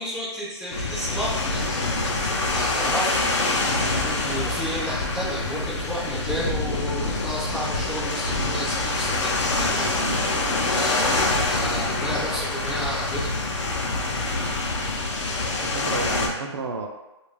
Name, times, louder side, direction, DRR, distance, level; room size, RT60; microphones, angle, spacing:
voice 1, 0.0-2.1 2.5-3.5 4.0-10.2 10.5-13.6, equal, 5° left, -14 dB, 0.3 m, -32 dB
sound 1, 0.7-16.3, left 2 dB, 85° left, 0.6 m, -25 dB
voice 2, 15.6-16.9, right 3 dB, 75° right, 3 dB, 0.5 m, -31 dB
2.4 x 2.2 x 3.3 m, 1.0 s
hypercardioid pair, 175°, 15 cm